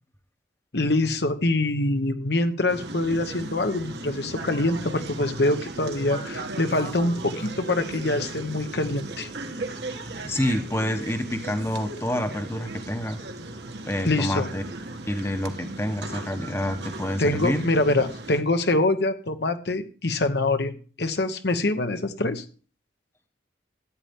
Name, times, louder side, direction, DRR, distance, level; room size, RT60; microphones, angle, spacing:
voice 1, 0.7-9.3 14.0-14.5 17.2-20.7 21.0-22.4, left 2 dB, 60° left, 8 dB, 1.0 m, -24 dB
sound 1, 2.7-18.4, right 2 dB, 65° right, 1.4 m, -37 dB
voice 2, 10.2-13.2 13.9-14.6 15.1-17.7, left 1 dB, 15° left, 7 dB, 1.0 m, -28 dB
14.5 x 8.9 x 3.6 m, 0.40 s
head